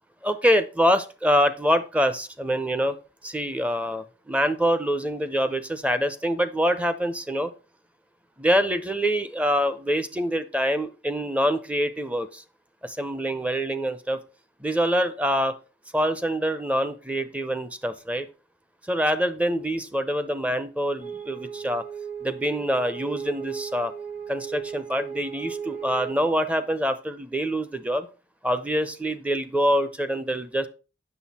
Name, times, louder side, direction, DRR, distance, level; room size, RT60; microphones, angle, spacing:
voice 1, 0.2-3.0 3.2-7.5 8.4-12.4 12.8-14.2 14.6-15.6 15.9-18.3 18.9-21.8 22.2-23.9 24.3-28.1 28.4-30.7, equal, 10° right, 0.6 m, -25 dB
sound 1, 21.0-26.3, right 7 dB, 40° right, 1.6 m, -36 dB
7.7 x 6.3 x 4.2 m
head